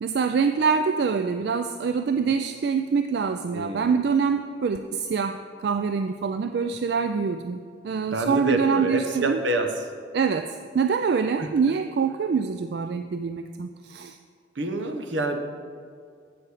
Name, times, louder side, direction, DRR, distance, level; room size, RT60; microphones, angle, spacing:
voice 1, 0.0-7.6 7.8-9.4 10.1-14.2, right 5 dB, 60° right, 8 dB, 0.3 m, -25 dB
voice 2, 3.5-3.9 8.1-9.9 11.4-11.5 14.5-15.4, right 2 dB, 80° right, 5 dB, 1.0 m, -27 dB
9.7 x 7.9 x 4.9 m, 2.2 s
head